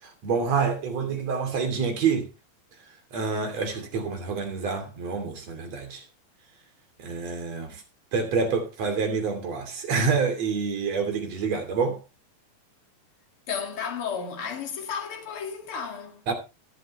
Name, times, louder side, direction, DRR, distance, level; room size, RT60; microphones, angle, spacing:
voice 1, 0.0-2.3 3.1-6.0 7.0-7.8 8.1-12.0 16.3-16.4, right 5 dB, 50° right, 3.7 m, -27 dB
voice 2, 13.5-16.2, left 6 dB, 40° left, 2.8 m, -33 dB
22.0 x 7.5 x 3.1 m
omnidirectional pair, 4.1 m